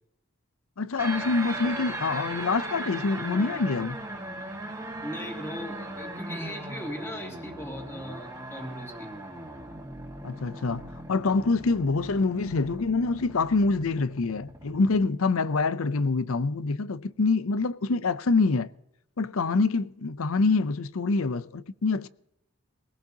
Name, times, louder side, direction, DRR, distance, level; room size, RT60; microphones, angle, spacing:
voice 1, 0.8-4.0 10.2-18.7 19.2-22.1, left 3 dB, 75° left, 0.6 m, -26 dB
sound 1, 1.0-15.0, right 1 dB, 15° right, 1.7 m, -38 dB
voice 2, 5.0-9.2, equal, 10° left, 2.5 m, -38 dB
22.0 x 16.5 x 2.9 m
head